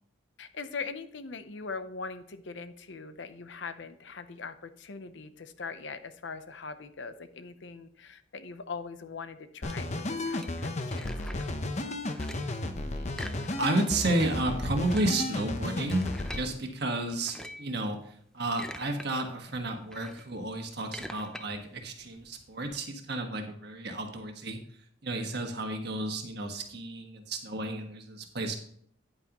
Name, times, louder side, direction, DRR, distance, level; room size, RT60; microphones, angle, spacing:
voice 1, 0.4-11.5, left 4 dB, 65° left, 11 dB, 0.7 m, -41 dB
sound 1, 9.6-16.5, left 2 dB, 35° left, 0.8 m, -33 dB
sound 2, 9.7-11.6 11.9-12.6 13.1-14.0 14.3-14.4 14.7-16.5 17.1-17.7 18.3-19.1 19.4-22.8, left 1 dB, 5° left, 0.5 m, -45 dB
voice 2, 12.6-13.3 13.6-24.6 25.0-28.5, right 2 dB, 55° right, 4 dB, 1.4 m, -32 dB
9.6 x 8.9 x 3.0 m, 0.63 s
head